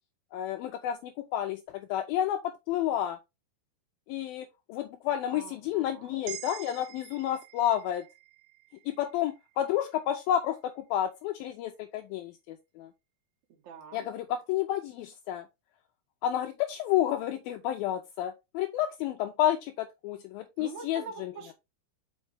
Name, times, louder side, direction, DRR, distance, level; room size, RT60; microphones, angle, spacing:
voice 1, 0.3-3.2 4.1-8.1 8.9-12.9 13.9-15.5 16.2-21.3, left 11 dB, 85° left, 2.1 m, -30 dB
voice 2, 5.3-6.2 13.5-14.1 20.6-21.5, right 5 dB, 55° right, 2.3 m, -45 dB
sound 1, 6.3-10.5, right 12 dB, 85° right, 2.9 m, -47 dB
5.9 x 5.4 x 3.3 m
omnidirectional pair, 4.8 m